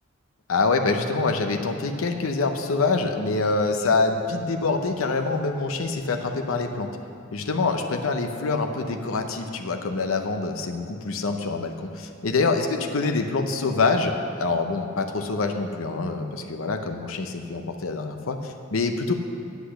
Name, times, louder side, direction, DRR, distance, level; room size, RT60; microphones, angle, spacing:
voice 1, 0.5-6.9 7.3-19.1, left 3 dB, 90° left, 5 dB, 0.7 m, -25 dB
8.2 x 8.1 x 6.3 m, 2.4 s
head